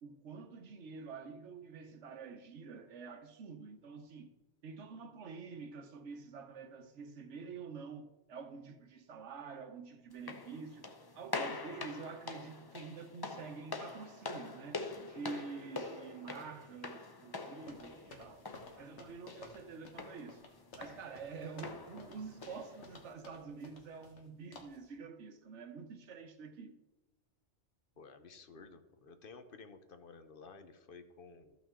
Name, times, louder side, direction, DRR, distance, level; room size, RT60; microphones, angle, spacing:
voice 1, 0.0-4.3 4.6-18.5 18.8-20.4 20.8-26.8, right 5 dB, 85° right, 1.2 m, -48 dB
sound 1, 10.1-23.1, left 3 dB, 25° left, 0.5 m, -45 dB
sound 2, 17.7-24.3 24.5-24.9, left 3 dB, 80° left, 1.5 m, -56 dB
voice 2, 28.0-31.6, left 4 dB, 55° left, 0.9 m, -54 dB
14.0 x 5.8 x 3.7 m
omnidirectional pair, 1.2 m